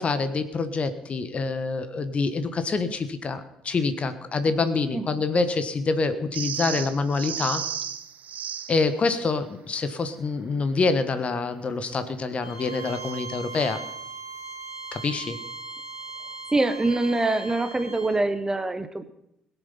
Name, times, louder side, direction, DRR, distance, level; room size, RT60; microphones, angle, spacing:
voice 1, 0.0-7.6 8.7-13.8 14.9-15.4, left 4 dB, 35° left, 11 dB, 1.4 m, -26 dB
sound 1, 6.3-8.9 12.9-13.2, right 8 dB, 50° right, 1.0 m, -33 dB
Bowed string instrument, 12.4-18.2, right 3 dB, 85° left, 2.6 m, -39 dB
voice 2, 16.5-19.1, right 2 dB, 15° right, 10 dB, 1.2 m, -24 dB
21.5 x 7.2 x 5.7 m, 0.79 s
figure-of-eight pair, 45°, 3 cm